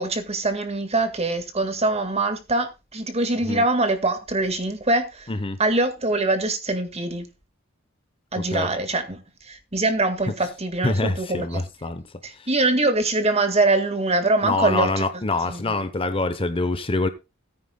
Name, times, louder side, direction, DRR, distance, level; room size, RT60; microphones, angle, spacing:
voice 1, 0.0-5.3 5.6-7.3 8.3-11.6 12.2-15.0 15.5-15.7, right 2 dB, 30° right, 1.9 m, -23 dB
voice 2, 10.8-12.0 12.3-12.5 14.4-17.1, left 2 dB, 25° left, 0.8 m, -25 dB
18.0 x 9.4 x 2.3 m
head